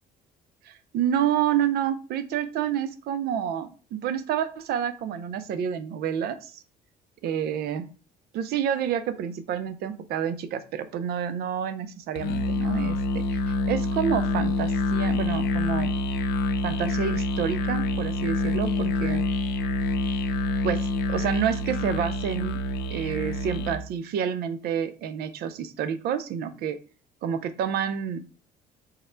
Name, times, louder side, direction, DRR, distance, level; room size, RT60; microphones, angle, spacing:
voice 1, 0.7-6.6 7.2-7.9 8.3-15.9 16.6-19.2 20.6-22.6 22.9-26.8 27.2-28.2, right 9 dB, 70° right, 11 dB, 0.5 m, -29 dB
Musical instrument, 12.1-23.9, left 2 dB, 80° left, 0.5 m, -27 dB
3.6 x 2.2 x 4.2 m, 0.36 s
cardioid pair, 110°, 17 cm